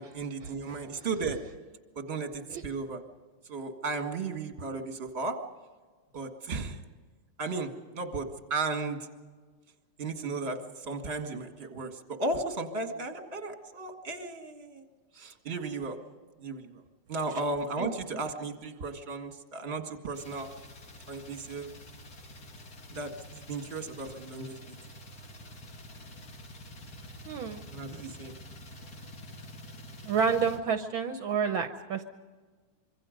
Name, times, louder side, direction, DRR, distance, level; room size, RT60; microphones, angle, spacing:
voice 1, 0.0-1.4 2.0-3.0 3.5-5.4 6.1-6.8 7.4-9.1 10.0-14.8 15.1-16.0 16.4-16.8 17.1-20.5 21.1-21.7 22.9-24.8 27.7-28.3, right 3 dB, 30° right, 5 dB, 2.0 m, -35 dB
sound 1, 20.1-30.6, left 1 dB, 45° left, 2.5 m, -48 dB
voice 2, 27.3-27.7 30.0-32.0, right 6 dB, 70° right, 8 dB, 1.6 m, -29 dB
26.0 x 24.0 x 5.2 m, 1.4 s
omnidirectional pair, 2.4 m